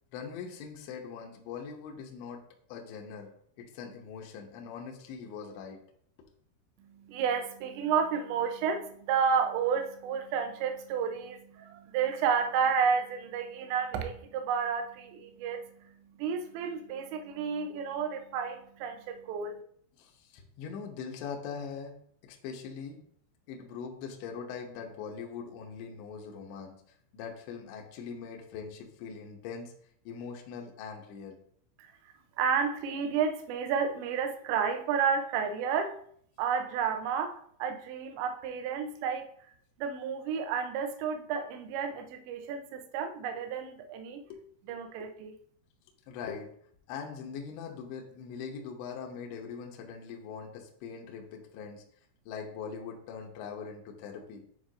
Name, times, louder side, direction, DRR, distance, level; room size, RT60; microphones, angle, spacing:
voice 1, 0.1-3.3 3.6-5.8 20.0-21.9 22.2-23.0 23.5-26.8 27.1-29.7 30.1-31.4 44.3-44.8 46.1-46.5 46.9-51.8 52.3-54.4, left 6 dB, 80° left, 1 dB, 2.7 m, -42 dB
voice 2, 6.8-15.9 16.2-19.6 31.8-31.9 32.4-36.0 36.4-39.3 39.8-44.2 44.7-45.3, right 6 dB, 85° right, 5 dB, 2.6 m, -31 dB
9.8 x 4.5 x 2.5 m, 0.63 s
omnidirectional pair, 5.9 m